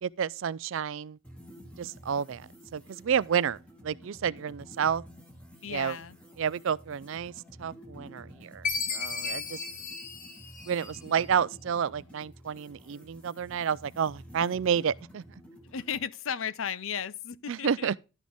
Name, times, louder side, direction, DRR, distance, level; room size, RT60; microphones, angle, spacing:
voice 1, 0.0-1.2 1.8-5.0 5.7-6.0 6.4-7.3 7.6-9.6 10.7-15.2 17.5-18.0, right 7 dB, 65° right, 0.4 m, -30 dB
sound 1, 1.2-16.0, equal, 5° left, 2.0 m, -51 dB
voice 2, 5.6-6.2 15.7-17.9, left 7 dB, 65° left, 0.6 m, -35 dB
Chime, 8.6-11.2, left 5 dB, 40° left, 1.6 m, -34 dB
12.0 x 6.3 x 3.5 m
head